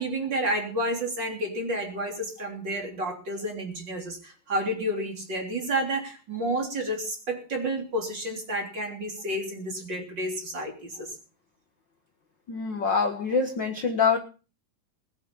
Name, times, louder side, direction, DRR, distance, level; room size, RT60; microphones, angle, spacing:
voice 1, 0.0-11.2, right 1 dB, 30° right, 2 dB, 3.9 m, -30 dB
voice 2, 12.5-14.2, left 5 dB, 45° left, 5 dB, 1.6 m, -25 dB
20.5 x 9.3 x 5.6 m, 0.36 s
omnidirectional pair, 3.9 m